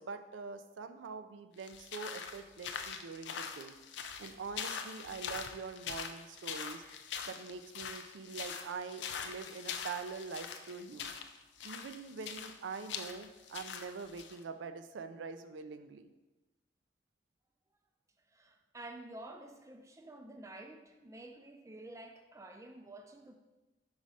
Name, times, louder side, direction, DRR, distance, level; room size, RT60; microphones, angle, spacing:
voice 1, 0.0-3.7 4.2-6.8 7.3-11.1 11.6-16.1, right 5 dB, 85° right, 9 dB, 0.4 m, -44 dB
sound 1, 1.6-14.4, left 7 dB, 75° left, 0.4 m, -43 dB
voice 2, 18.3-23.3, right 2 dB, 15° right, 5 dB, 0.4 m, -50 dB
5.1 x 4.8 x 4.0 m, 1.1 s
head